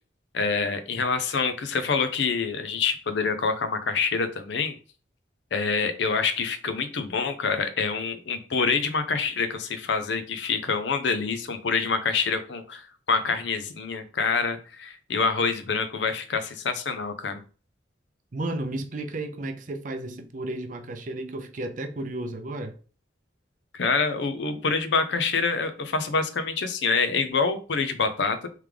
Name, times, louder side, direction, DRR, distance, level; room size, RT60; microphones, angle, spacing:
voice 1, 0.3-4.7 5.5-17.4 23.7-28.5, left 4 dB, 75° left, 0.5 m, -26 dB
voice 2, 18.3-22.8, right 2 dB, 45° right, 0.5 m, -33 dB
3.5 x 3.2 x 3.3 m
head